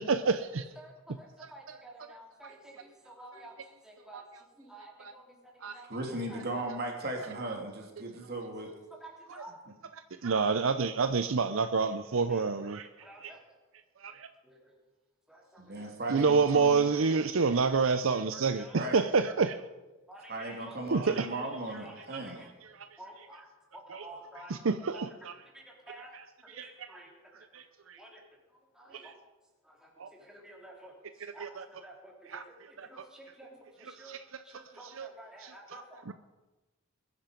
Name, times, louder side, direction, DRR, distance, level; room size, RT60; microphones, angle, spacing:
voice 1, 0.0-0.7 1.4-1.8 2.4-2.5 3.3-3.4 4.1-4.2 5.0-5.1 5.6-5.8 9.3-9.4 9.9-12.9 13.2-13.3 14.0-14.3 16.1-19.6 20.9-21.3 22.7-22.9 23.2-23.3 23.9-24.1 24.3-25.4 26.0-26.9 27.5-28.0 28.9-29.1 30.0-30.1 31.2-31.7 32.3-33.0 33.8-34.4 34.8-35.1 35.4-36.1, right 4 dB, 65° right, 10 dB, 0.6 m, -29 dB
voice 2, 0.8-3.5 3.8-4.2 4.6-5.2 5.7-5.9 6.3-6.6 9.0-9.5 12.3-12.4 13.0-13.4 14.5-14.7 15.3-15.9 18.3-18.8 20.1-20.7 21.0-22.5 23.0-23.5 23.7-24.5 25.5-26.1 26.4-27.1 28.0-28.2 28.7-29.1 29.7-29.9 30.2-30.9 31.3-32.4 32.8-34.2 34.4-36.0, right 1 dB, 5° right, -2 dB, 3.4 m, -51 dB
voice 3, 5.8-8.7 9.6-9.7 15.6-16.9 18.7-19.0 20.3-22.4, right 1 dB, 50° right, 1 dB, 2.9 m, -37 dB
21.0 x 10.5 x 5.2 m, 1.1 s
head